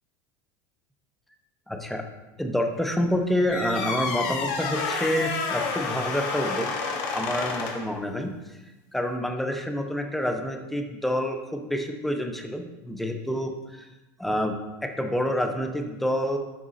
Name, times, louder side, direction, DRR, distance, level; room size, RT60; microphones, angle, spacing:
voice 1, 1.7-2.0 2.4-6.7 7.1-8.3 8.9-13.9 14.2-14.6 14.8-16.4, equal, ahead, 5 dB, 0.4 m, -28 dB
sound 1, 3.5-7.9, left 4 dB, 45° left, 0.7 m, -30 dB
10.0 x 3.9 x 2.5 m, 1.1 s
supercardioid pair, 175°, 9 cm